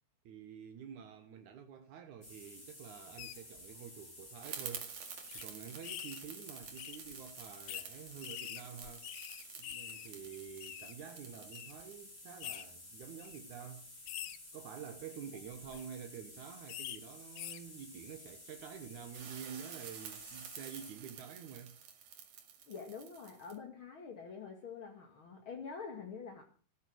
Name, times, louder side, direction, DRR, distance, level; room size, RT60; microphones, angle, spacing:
voice 1, 0.2-5.1 5.3-9.1 9.6-13.9 14.5-21.8, right 8 dB, 75° right, 1.8 m, -49 dB
sound 1, 2.2-20.9, left 1 dB, 15° left, 3.6 m, -54 dB
sound 2, 3.2-3.4 4.2-4.3 4.6-4.7 5.3-5.4 5.8-6.2 6.8-7.0 7.7-7.9 8.2-10.1 10.3-10.9 11.5-11.7 12.4-12.6 13.2-13.4 14.1-14.4 15.5-15.8 16.7-17.0 17.4-17.6, left 13 dB, 75° left, 2.4 m, -45 dB
sound 3, 4.4-13.4 19.1-23.6, right 8 dB, 55° right, 3.5 m, -50 dB
voice 2, 22.7-26.4, left 5 dB, 50° left, 1.5 m, -46 dB
16.0 x 13.5 x 6.3 m
omnidirectional pair, 5.3 m